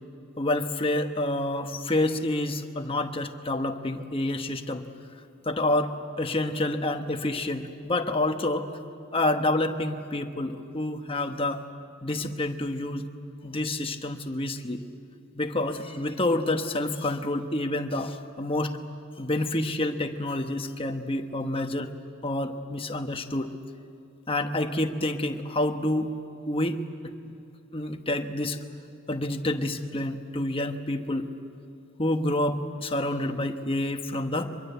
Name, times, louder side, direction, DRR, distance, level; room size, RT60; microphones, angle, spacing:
voice 1, 0.4-4.8 5.4-8.7 9.1-11.6 12.0-13.0 13.4-14.8 15.3-18.8 19.2-21.9 22.2-23.5 24.3-26.1 26.5-27.4 27.7-28.6 29.1-31.3 32.0-34.6, left 1 dB, 25° left, 6 dB, 1.2 m, -28 dB
24.0 x 22.5 x 8.2 m, 2.6 s
head